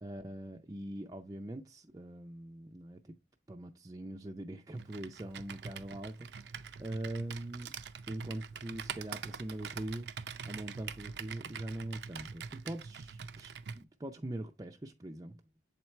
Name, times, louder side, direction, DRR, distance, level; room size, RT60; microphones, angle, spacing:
voice 1, 0.0-3.0 3.5-6.3 6.8-7.7 8.1-10.1 10.4-15.4, right 1 dB, 20° right, 0.4 m, -42 dB
Computer keyboard, 4.8-13.8, right 6 dB, 75° right, 0.5 m, -44 dB
7.3 x 4.5 x 3.1 m
head